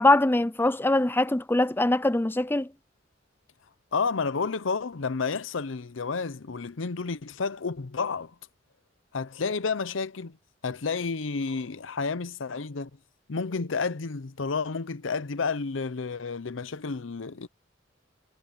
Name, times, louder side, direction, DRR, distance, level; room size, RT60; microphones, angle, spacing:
voice 1, 0.0-2.7, left 2 dB, 10° left, 0.5 m, -22 dB
voice 2, 3.9-8.3 9.1-10.4 10.6-12.9 13.3-17.5, left 4 dB, 85° left, 0.7 m, -30 dB
head